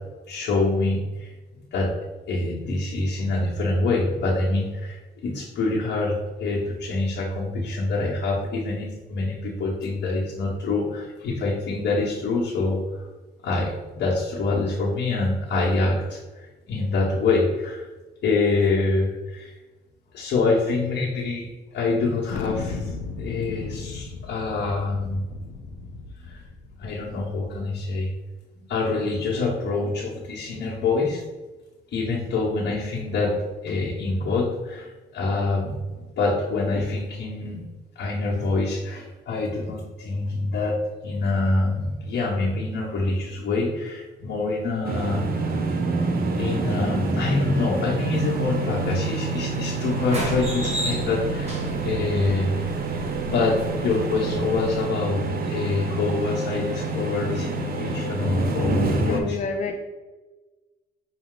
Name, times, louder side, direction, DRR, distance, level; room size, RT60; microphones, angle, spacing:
voice 1, 0.3-1.3 1.7-1.9 2.3-5.0 5.2-12.8 13.4-16.2 16.7-17.8 18.2-19.5 20.1-21.5 21.7-25.2 26.2-26.4 26.8-28.1 28.7-31.2 31.9-33.3 33.6-37.6 37.9-40.8 41.0-45.6 46.4-51.6 51.8-52.5 53.3-59.3, left 3 dB, 65° left, -7 dB, 1.1 m, -25 dB
Thunder, 22.3-27.5, left 4 dB, 90° left, 0.5 m, -35 dB
sound 1, 44.8-59.2, right 3 dB, 50° right, 0.7 m, -27 dB
sound 2, 48.0-54.8, equal, 35° right, 1.3 m, -35 dB
voice 2, 59.0-59.8, left 4 dB, 35° left, 3 dB, 0.4 m, -29 dB
5.4 x 2.3 x 3.7 m, 1.2 s
cardioid pair, 90°, 20 cm